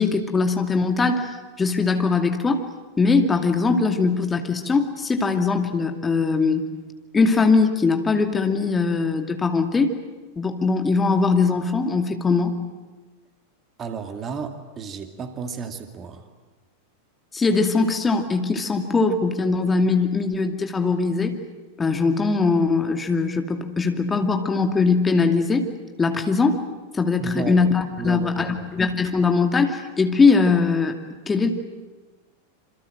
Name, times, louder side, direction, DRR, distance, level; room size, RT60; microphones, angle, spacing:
voice 1, 0.0-2.6 3.0-6.6 7.1-9.9 10.4-12.6 17.3-21.4 21.8-25.7 26.0-26.6 26.9-30.9 31.3-31.5, left 4 dB, 15° left, 5 dB, 2.4 m, -21 dB
voice 2, 13.8-16.3 27.2-27.6 28.0-28.7, right 5 dB, 25° right, 6 dB, 2.4 m, -33 dB
27.5 x 27.0 x 7.8 m, 1.2 s
figure-of-eight pair, 90°, 0 cm